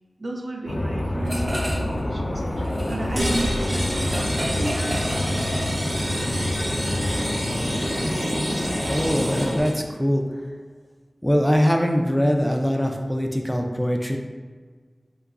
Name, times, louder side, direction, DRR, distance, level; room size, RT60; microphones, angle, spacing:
voice 1, 0.2-5.6 6.9-7.0, right 1 dB, 65° right, 0 dB, 0.5 m, -35 dB
sound 1, 0.7-9.6, left 1 dB, 80° left, 0.5 m, -27 dB
sound 2, 1.2-2.0 2.3-6.1, equal, 35° right, 0.7 m, -33 dB
sound 3, 3.1-9.7, equal, 80° right, 1.5 m, -29 dB
voice 2, 8.8-10.2 11.2-14.2, equal, 5° left, 2 dB, 0.4 m, -22 dB
3.0 x 2.4 x 3.6 m, 1.4 s
wide cardioid pair, 45°, 0 cm